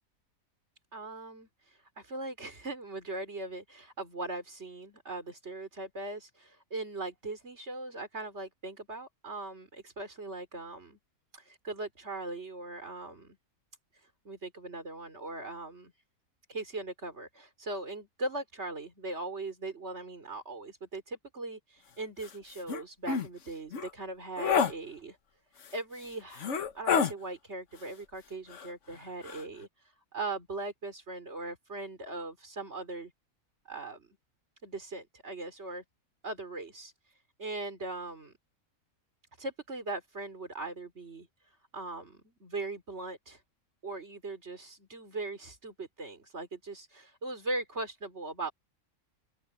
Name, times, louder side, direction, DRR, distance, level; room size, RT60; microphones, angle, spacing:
voice 1, 0.9-11.0 11.3-13.4 13.9-15.9 16.5-25.2 25.7-33.1 33.7-34.1 34.6-35.8 36.2-38.3 39.4-43.4 43.8-48.5, right 2 dB, 50° right, 4.1 m, -40 dB
sound 1, 22.2-22.3 22.7-22.8 23.1-23.3 23.7-23.9 24.4-24.7 25.6-25.7 26.3-27.1 28.5-28.9 29.2-29.4, left 6 dB, 60° left, 1.4 m, -28 dB
open air
omnidirectional pair, 1.5 m